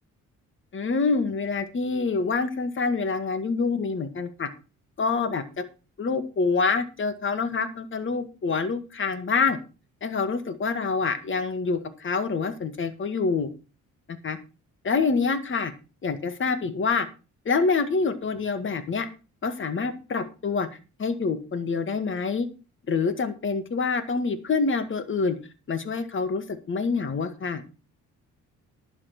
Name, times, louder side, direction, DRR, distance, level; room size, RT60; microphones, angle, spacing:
voice 1, 0.7-4.5 5.0-5.6 6.0-9.6 10.0-13.5 14.2-14.4 14.8-15.7 16.0-17.1 17.5-19.1 19.4-20.7 21.0-22.5 22.9-25.4 25.7-27.6, left 4 dB, 40° left, 10 dB, 2.0 m, -26 dB
11.5 x 7.5 x 6.0 m, 0.32 s
cardioid pair, 90°, 30 cm